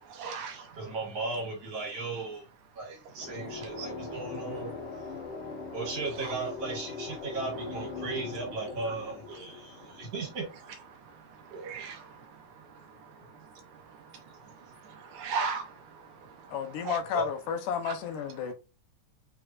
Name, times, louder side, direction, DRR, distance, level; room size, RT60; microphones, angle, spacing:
voice 1, 0.0-0.8 3.2-3.3 3.8-3.9 6.2-6.3 9.8-10.0 11.1-13.2 13.5-17.0 17.9-18.0, right 5 dB, 75° right, 2.3 m, -40 dB
voice 2, 0.7-2.5 2.7-4.8 5.7-10.8 11.5-11.8 17.1-17.2, right 3 dB, 55° right, 2.9 m, -36 dB
sound 1, 3.2-10.8, left 4 dB, 55° left, 1.6 m, -41 dB
voice 3, 16.5-18.5, left 7 dB, 85° left, 2.4 m, -32 dB
6.0 x 3.3 x 2.4 m
omnidirectional pair, 3.6 m